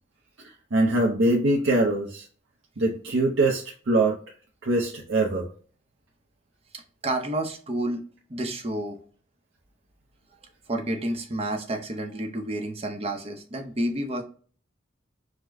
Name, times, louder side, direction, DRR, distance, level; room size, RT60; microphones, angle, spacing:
voice 1, 0.7-2.2 2.8-4.2 4.6-5.5, right 2 dB, 90° right, -2 dB, 0.7 m, -23 dB
voice 2, 6.7-8.0 8.3-9.0 10.7-14.2, right 1 dB, 30° right, 4 dB, 0.7 m, -30 dB
5.0 x 2.1 x 3.6 m, 0.41 s
head